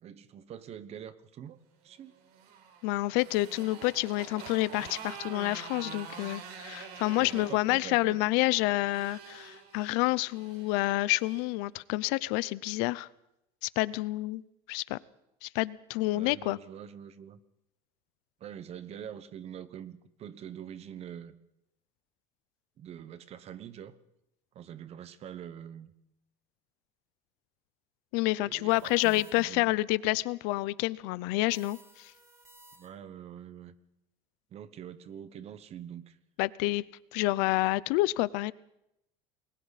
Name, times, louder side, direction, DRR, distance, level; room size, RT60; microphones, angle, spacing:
voice 1, 0.0-2.1 7.1-8.2 16.1-17.4 18.4-21.3 22.8-23.9 24.5-25.9 28.4-29.7 32.7-33.7 34.5-36.2, right 9 dB, 35° right, 14 dB, 1.2 m, -45 dB
Motorcycle, 2.1-11.5, right 6 dB, 65° right, 4.9 m, -47 dB
voice 2, 2.8-13.1 13.6-14.4 14.7-15.0 15.4-16.6 28.1-32.1 36.4-36.8 37.1-38.5, left 19 dB, 70° left, 20 dB, 0.7 m, -28 dB
sound 1, 28.7-29.7 31.5-33.2, right 1 dB, 15° right, 3.6 m, -57 dB
29.0 x 21.5 x 4.2 m, 0.82 s
cardioid pair, 155°, 18 cm